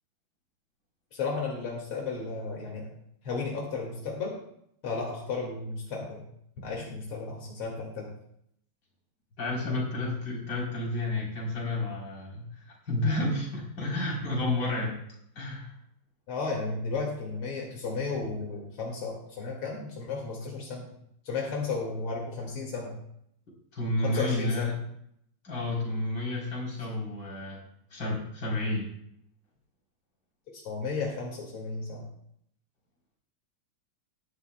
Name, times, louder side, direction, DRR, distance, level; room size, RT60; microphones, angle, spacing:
voice 1, 1.1-2.9 3.2-4.3 4.8-6.2 6.6-8.1 16.3-20.9 21.2-22.9 24.0-24.7 30.6-32.0, left 4 dB, 85° left, -2 dB, 3.0 m, -34 dB
voice 2, 9.4-15.0 15.4-15.7 23.7-24.8 25.4-27.6 27.9-28.9, left 2 dB, 50° left, -3 dB, 4.2 m, -31 dB
18.5 x 11.0 x 2.2 m, 0.72 s
omnidirectional pair, 2.3 m